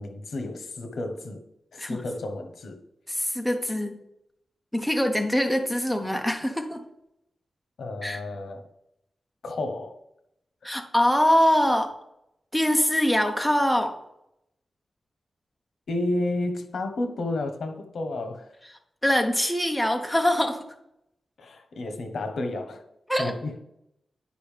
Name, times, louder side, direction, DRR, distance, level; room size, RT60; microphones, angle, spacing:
voice 1, 0.0-1.4 1.7-2.8 7.8-8.7 9.4-10.0 15.9-18.5 21.4-22.8 23.2-23.6, left 2 dB, 80° left, 6 dB, 1.0 m, -31 dB
voice 2, 3.1-4.0 4.7-6.8 8.0-8.2 10.6-11.9 12.5-14.0 19.0-20.6 23.1-23.3, equal, ahead, 4 dB, 0.7 m, -23 dB
10.5 x 5.3 x 3.3 m, 0.81 s
wide cardioid pair, 165°, 0 cm